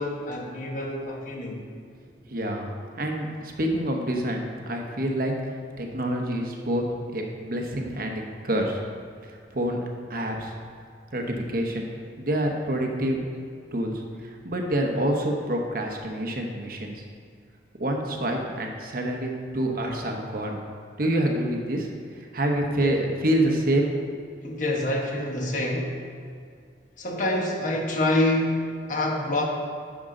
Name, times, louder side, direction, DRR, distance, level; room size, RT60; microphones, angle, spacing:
voice 1, 0.0-1.6 22.7-23.0 24.4-26.2 27.0-29.5, left 1 dB, 45° left, 1 dB, 1.1 m, -27 dB
voice 2, 2.3-2.7 3.0-5.3 5.8-6.8 7.1-8.8 9.2-9.8 10.1-10.5 11.1-11.9 12.2-13.3 13.7-16.9 17.8-20.6 21.0-21.9 22.3-24.3, right 1 dB, 55° right, 2 dB, 1.0 m, -27 dB
10.0 x 6.4 x 3.8 m, 2.2 s
head